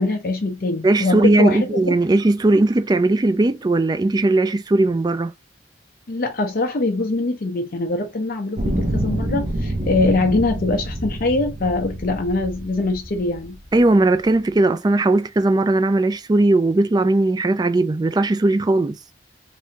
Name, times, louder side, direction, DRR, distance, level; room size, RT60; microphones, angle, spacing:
voice 1, 0.0-1.8 6.1-13.6, left 2 dB, 50° left, 0.6 m, -23 dB
voice 2, 0.8-5.3 13.7-19.0, right 2 dB, 20° right, 0.3 m, -18 dB
sound 1, 8.6-13.8 14.5-14.6, right 1 dB, 45° right, 0.9 m, -27 dB
3.4 x 2.6 x 2.7 m
head